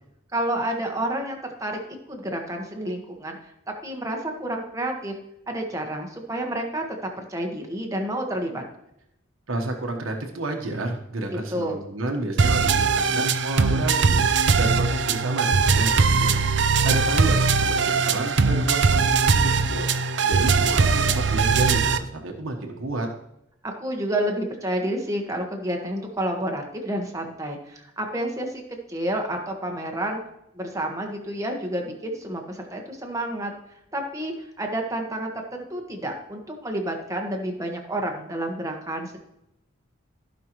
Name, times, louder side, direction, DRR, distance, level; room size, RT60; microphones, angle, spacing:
voice 1, 0.3-1.8 2.1-3.5 3.8-5.1 5.5-8.6 11.5-11.8 23.6-28.6 28.9-30.2 30.5-33.5 33.9-39.2, right 1 dB, 15° right, 2 dB, 1.4 m, -29 dB
voice 2, 9.5-14.2 14.6-16.4 16.8-19.9 20.3-23.1, right 2 dB, 90° right, 2 dB, 1.3 m, -30 dB
sound 1, 12.4-22.0, right 5 dB, 60° right, 0.6 m, -20 dB
15.0 x 5.7 x 3.1 m, 0.81 s
head